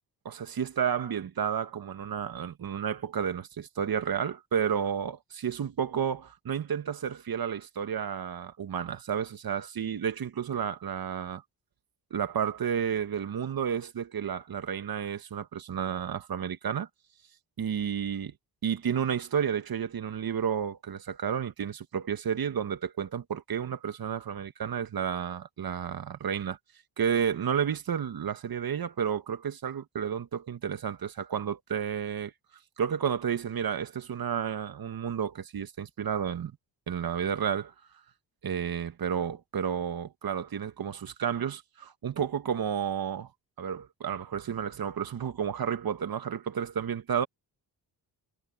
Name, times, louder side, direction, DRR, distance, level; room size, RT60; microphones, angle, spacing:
voice 1, 0.2-11.4 12.1-16.9 17.6-18.3 18.6-26.6 27.0-32.3 32.8-36.5 36.9-37.7 38.4-43.3 43.6-47.3, right 8 dB, 55° right, 1.7 m, -31 dB
cardioid pair, 65°, 42 cm